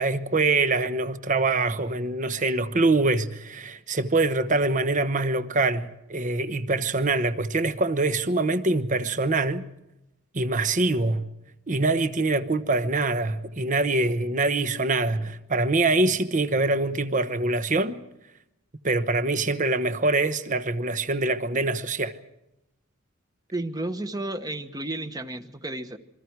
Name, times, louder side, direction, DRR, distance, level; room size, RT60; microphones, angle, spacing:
voice 1, 0.0-9.6 10.3-11.2 11.7-18.0 18.8-22.1, right 3 dB, 40° right, 1.1 m, -24 dB
voice 2, 23.5-26.0, right 2 dB, 20° right, 1.2 m, -32 dB
28.0 x 23.0 x 4.7 m
head